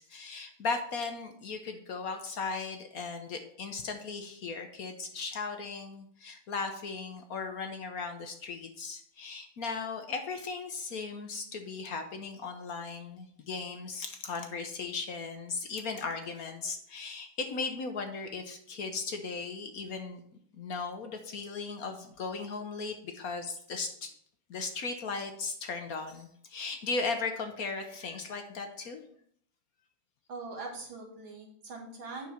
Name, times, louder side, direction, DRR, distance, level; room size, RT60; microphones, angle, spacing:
voice 1, 0.0-20.2 20.5-24.1 24.5-29.0, left 4 dB, 55° left, 6 dB, 1.2 m, -37 dB
voice 2, 30.3-32.3, right 3 dB, 85° right, 0 dB, 2.6 m, -42 dB
8.7 x 6.1 x 4.3 m, 0.64 s
omnidirectional pair, 2.1 m